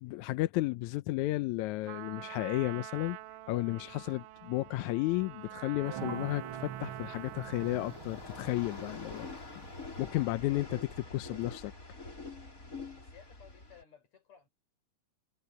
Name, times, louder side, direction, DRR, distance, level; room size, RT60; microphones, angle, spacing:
voice 1, 0.0-3.2 3.5-9.3 9.6-9.7 10.0-11.7, left 18 dB, 80° left, 1.8 m, -33 dB
Trumpet, 1.9-8.1, right 17 dB, 90° right, 2.3 m, -46 dB
sound 1, 3.0-13.8, left 3 dB, 25° left, 4.9 m, -47 dB
sound 2, 5.8-10.5, right 9 dB, 65° right, 1.3 m, -45 dB
voice 2, 13.0-14.5, left 8 dB, 55° left, 5.5 m, -57 dB
omnidirectional pair, 3.8 m